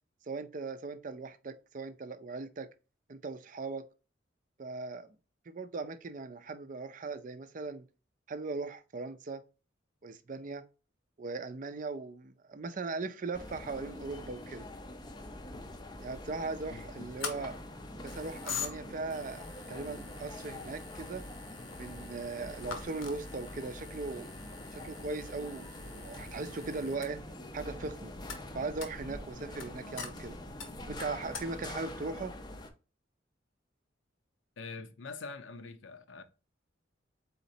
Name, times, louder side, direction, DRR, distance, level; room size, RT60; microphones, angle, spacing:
voice 1, 0.3-2.7 3.1-3.9 4.6-5.2 5.5-7.9 8.3-9.4 10.0-10.6 11.2-14.7 16.0-17.6 18.0-21.2 21.8-24.3 24.7-27.2 27.5-28.1 28.5-30.4 30.9-32.3, right 3 dB, 40° right, 0.4 m, -39 dB
sound 1, 13.3-32.7, left 1 dB, 20° left, 0.5 m, -45 dB
voice 2, 16.7-17.1 34.6-36.2, left 4 dB, 75° left, 0.6 m, -45 dB
sound 2, 17.2-31.9, left 5 dB, 90° left, 1.1 m, -45 dB
4.2 x 4.0 x 2.7 m
head